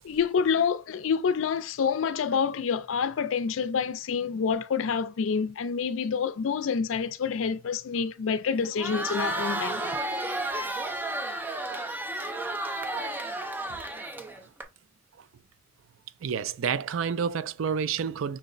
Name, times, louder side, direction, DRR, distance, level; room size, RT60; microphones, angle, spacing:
voice 1, 0.0-9.9, left 6 dB, 80° left, 0.4 m, -27 dB
Crowd, 8.6-14.6, right 1 dB, 10° right, 0.5 m, -32 dB
voice 2, 16.2-18.4, right 6 dB, 85° right, 0.4 m, -29 dB
6.0 x 2.1 x 3.9 m
head